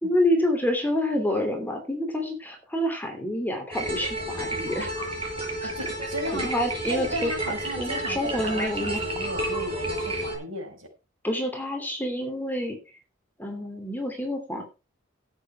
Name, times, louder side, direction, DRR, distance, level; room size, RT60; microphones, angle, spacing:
voice 1, 0.0-4.9 5.6-5.7 6.0-7.3 7.8-9.0 11.2-12.8 13.4-14.6, left 1 dB, 10° left, 3 dB, 2.8 m, -28 dB
sound 1, 3.7-10.4, right 1 dB, 25° right, 5.2 m, -31 dB
voice 2, 5.6-6.5 6.9-10.9, right 1 dB, 80° right, 2 dB, 5.5 m, -35 dB
12.5 x 8.4 x 4.6 m, 0.31 s
head